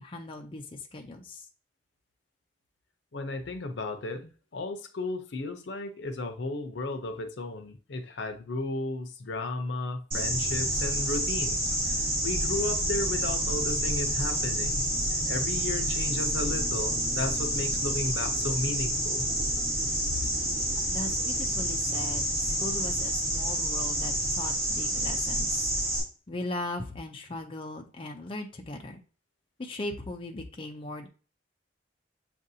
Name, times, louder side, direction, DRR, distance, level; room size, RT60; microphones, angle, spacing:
voice 1, 0.0-1.5 20.9-25.7 26.3-29.0 29.6-31.1, left 2 dB, 30° left, 0.4 m, -38 dB
voice 2, 3.1-14.9 15.3-19.3, left 2 dB, 70° left, 0.6 m, -34 dB
sound 1, 10.1-26.0, right 1 dB, 35° right, 2.5 m, -28 dB
7.3 x 2.6 x 2.7 m
head